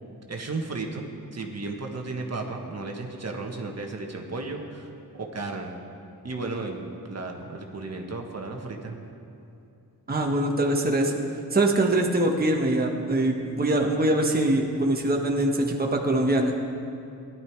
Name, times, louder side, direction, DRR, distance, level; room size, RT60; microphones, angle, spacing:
voice 1, 0.3-4.9 5.2-5.7 6.2-9.0, right 3 dB, 45° right, 2 dB, 1.5 m, -34 dB
voice 2, 10.1-11.1 11.5-16.6, right 1 dB, 25° right, 1 dB, 1.5 m, -23 dB
15.5 x 11.0 x 4.7 m, 2.7 s
cardioid pair, 60°, 37 cm